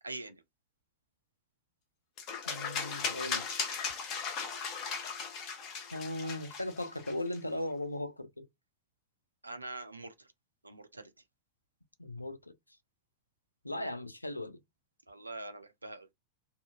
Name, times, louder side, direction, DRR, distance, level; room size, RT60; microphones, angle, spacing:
voice 1, 0.0-0.3 9.4-10.1 10.6-11.1 15.1-16.1, right 2 dB, 80° right, 0.4 m, -43 dB
sound 1, 2.2-7.4, left 5 dB, 35° left, 0.8 m, -37 dB
voice 2, 2.5-3.5 5.9-8.5 12.0-12.6 13.6-14.6, left 1 dB, 85° left, 0.3 m, -38 dB
2.6 x 2.4 x 2.5 m
figure-of-eight pair, 90°, 0 cm